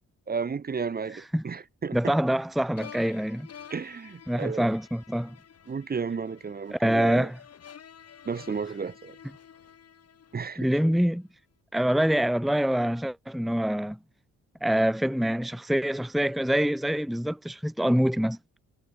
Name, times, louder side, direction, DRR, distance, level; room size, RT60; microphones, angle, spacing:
voice 1, 0.3-2.1 3.7-4.7 5.7-7.3 8.2-9.2 10.3-10.7, right 5 dB, 30° right, 1.2 m, -33 dB
voice 2, 1.9-3.5 4.3-5.4 6.7-7.4 10.6-11.3 11.7-14.0 14.6-18.4, equal, ahead, 0.9 m, -25 dB
sound 1, 2.8-11.0, left 8 dB, 55° left, 6.1 m, -50 dB
cardioid pair, 90°, 30 cm